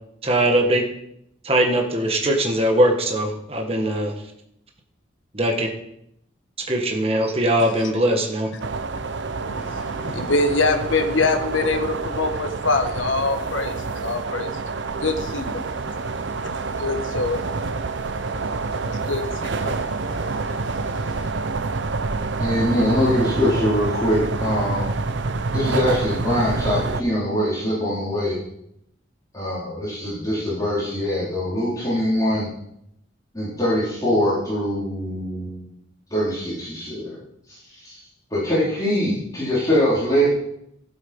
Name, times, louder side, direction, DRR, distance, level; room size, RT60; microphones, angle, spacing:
voice 1, 0.2-0.8 1.4-4.1 5.3-5.7 6.7-8.5, right 1 dB, 30° right, 2 dB, 1.5 m, -20 dB
sound 1, 8.6-27.0, right 3 dB, 70° right, 0.7 m, -27 dB
voice 2, 9.5-14.6 15.0-15.9 16.4-17.5 18.3-18.4 18.7-21.3, left 3 dB, 80° left, 6 dB, 1.4 m, -25 dB
voice 3, 22.4-24.9 25.5-28.4 29.3-32.5 33.3-35.7 36.1-37.1 37.5-37.6 37.8-38.0 38.3-40.3, equal, 20° left, -9 dB, 4.0 m, -23 dB
14.5 x 8.3 x 5.3 m, 0.76 s
head